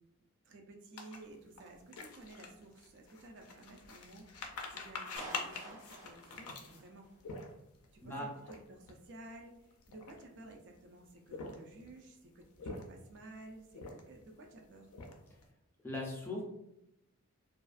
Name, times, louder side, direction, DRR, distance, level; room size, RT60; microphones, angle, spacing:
voice 1, 0.4-7.1 7.9-14.9, right 2 dB, 55° right, 3 dB, 0.4 m, -54 dB
sound 1, 1.0-7.9 8.4-8.6 8.8-9.1 9.7-10.5 11.2-11.9 12.4-13.2 13.7-14.3 14.6-15.4, left 4 dB, 85° left, 0.4 m, -45 dB
Clapping, 5.2-7.2, right 2 dB, 85° right, 0.9 m, -50 dB
voice 2, 15.8-16.4, left 1 dB, 10° left, -3 dB, 0.4 m, -39 dB
2.4 x 2.3 x 2.3 m, 0.82 s
head